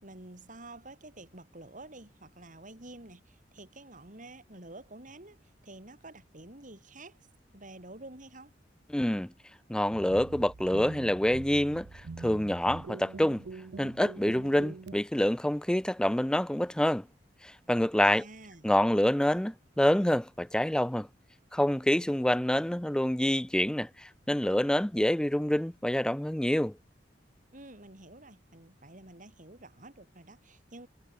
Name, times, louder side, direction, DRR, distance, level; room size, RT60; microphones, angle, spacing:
voice 1, 0.0-7.2 7.5-8.6 18.0-18.7 27.5-30.9, right 2 dB, 45° right, 6.2 m, -49 dB
voice 2, 8.9-9.3 9.7-11.9 12.2-13.4 13.8-17.0 17.4-18.2 18.6-21.1 21.5-26.7, left 1 dB, 5° left, 0.4 m, -27 dB
sound 1, 9.9-15.0, right 4 dB, 65° right, 0.5 m, -44 dB
head